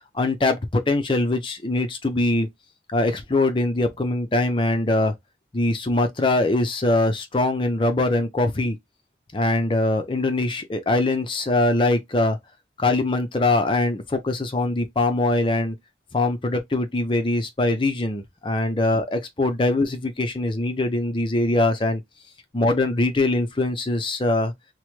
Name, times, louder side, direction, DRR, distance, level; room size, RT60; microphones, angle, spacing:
voice 1, 0.1-2.5 2.9-5.1 5.5-8.8 9.3-12.4 12.8-15.8 16.1-22.0 22.5-24.5, left 2 dB, 30° left, 0.5 m, -22 dB
3.0 x 2.1 x 3.0 m
head